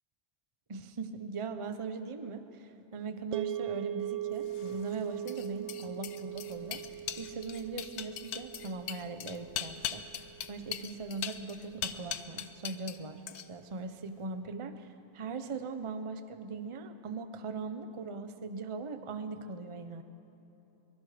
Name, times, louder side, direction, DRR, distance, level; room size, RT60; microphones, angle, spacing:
voice 1, 0.7-6.8 7.2-10.0 10.4-20.0, right 4 dB, 35° right, 9 dB, 0.5 m, -40 dB
sound 1, 3.3-11.6, right 12 dB, 80° right, 0.6 m, -41 dB
sound 2, 4.5-13.0 13.3-13.7, left 10 dB, 65° left, 1.1 m, -40 dB
sound 3, 6.3-11.8, equal, 50° right, 3.5 m, -63 dB
24.0 x 23.5 x 5.1 m, 3.0 s
omnidirectional pair, 2.0 m